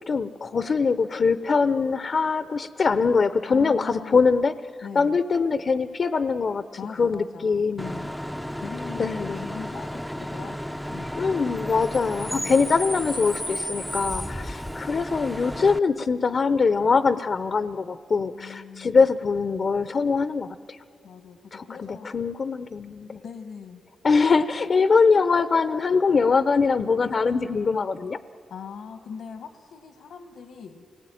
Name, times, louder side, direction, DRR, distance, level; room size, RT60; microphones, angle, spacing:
voice 1, 0.1-4.5 4.9-6.6 7.0-8.1 9.0-9.5 11.2-20.8 21.5-23.2 24.0-28.2, left 4 dB, 55° left, 12 dB, 0.7 m, -23 dB
voice 2, 3.5-4.2 4.8-5.2 6.8-7.6 8.5-9.1 9.4-11.6 12.3-12.9 14.1-14.9 18.4-19.1 21.0-22.1 23.2-23.8 24.6-24.8 28.5-30.8, left 6 dB, 90° left, 7 dB, 1.4 m, -41 dB
Bus / Idling / Screech, 7.8-15.8, equal, ahead, 0.6 m, -33 dB
29.0 x 20.0 x 9.2 m, 2.5 s
cardioid pair, 75°, 0 cm